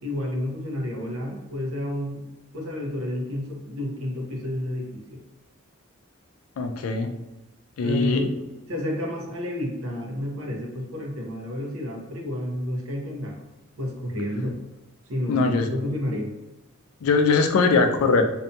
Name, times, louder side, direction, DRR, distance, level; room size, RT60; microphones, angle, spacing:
voice 1, 0.0-2.2 2.5-5.2 7.8-8.4 8.7-13.4 13.8-14.6 15.1-16.3, left 1 dB, 80° right, 0 dB, 0.7 m, -30 dB
voice 2, 6.6-7.1 7.8-8.3 15.3-15.7 17.0-18.2, left 4 dB, 80° left, 6 dB, 0.3 m, -21 dB
2.6 x 2.2 x 2.6 m, 1.0 s
head